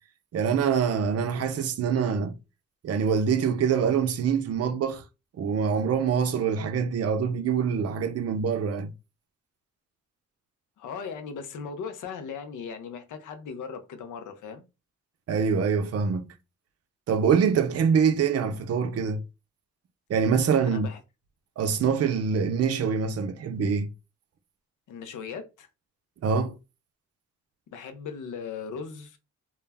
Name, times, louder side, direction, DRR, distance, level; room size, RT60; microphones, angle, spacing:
voice 1, 0.3-2.3 2.8-5.0 5.4-8.9 15.3-16.3 17.1-19.2 20.1-20.9 21.6-23.9 26.2-26.5, right 6 dB, 55° right, 0.5 m, -25 dB
voice 2, 10.8-14.6 20.7-21.0 24.9-25.7 27.7-29.2, left 6 dB, 80° left, 0.6 m, -38 dB
2.2 x 2.0 x 3.3 m
cardioid pair, 60°, 30 cm